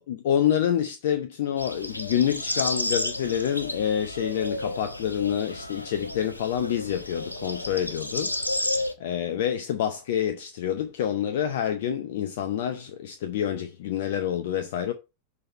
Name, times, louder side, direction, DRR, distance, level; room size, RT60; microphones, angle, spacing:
voice 1, 0.0-14.9, left 9 dB, 55° left, 0.6 m, -27 dB
sound 1, 1.6-8.9, left 1 dB, 85° left, 0.8 m, -32 dB
6.6 x 4.2 x 5.2 m
figure-of-eight pair, 90°, 0 cm